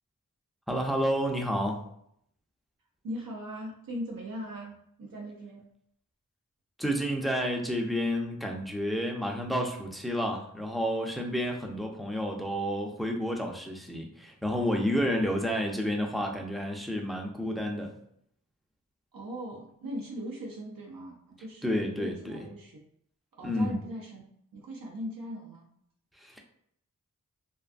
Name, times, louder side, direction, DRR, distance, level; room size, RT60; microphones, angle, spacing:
voice 1, 0.7-1.8 6.8-17.9 21.6-22.4 23.4-23.8 26.2-26.4, equal, ahead, 1 dB, 0.4 m, -30 dB
voice 2, 3.0-5.7 19.1-22.8 23.4-24.2 24.5-25.7, equal, 80° right, -1 dB, 0.5 m, -40 dB
2.4 x 2.3 x 2.4 m, 0.70 s
wide cardioid pair, 60°, 33 cm